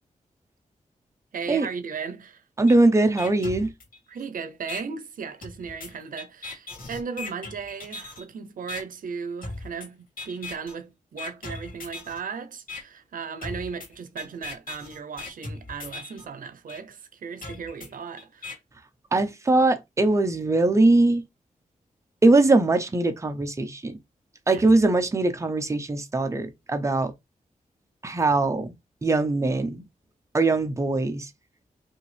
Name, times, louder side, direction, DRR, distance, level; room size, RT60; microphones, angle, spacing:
voice 1, 1.3-2.4 4.1-18.6 24.5-24.7, right 6 dB, 80° right, 0.6 m, -36 dB
voice 2, 2.6-3.7 19.1-21.2 22.2-24.0 24.5-27.1 28.0-28.7 29.0-29.8 30.3-31.3, right 2 dB, 20° right, 0.7 m, -21 dB
sound 1, 2.7-2.8 3.2-4.2 4.7-4.8 5.4-8.2 8.7-8.8 9.4-9.9 10.2-10.7 11.2-12.2 12.7-12.8 13.4-16.2 16.7-16.8 17.4-18.5, left 3 dB, 85° left, 2.2 m, -38 dB
5.4 x 2.7 x 3.3 m
wide cardioid pair, 130°, 14 cm